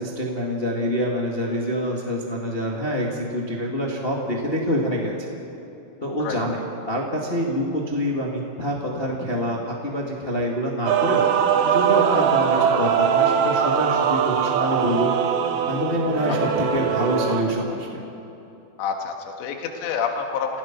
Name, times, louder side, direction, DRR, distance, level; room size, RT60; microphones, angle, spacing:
voice 1, 0.0-5.3 6.0-15.1 15.7-18.0, equal, 30° left, -2 dB, 0.9 m, -26 dB
Male singing / Female singing / Musical instrument, 10.9-17.4, right 7 dB, 70° right, 2.8 m, -21 dB
voice 2, 18.8-20.6, left 6 dB, 80° left, 3 dB, 3.8 m, -28 dB
28.0 x 17.0 x 6.0 m, 3.0 s
omnidirectional pair, 4.9 m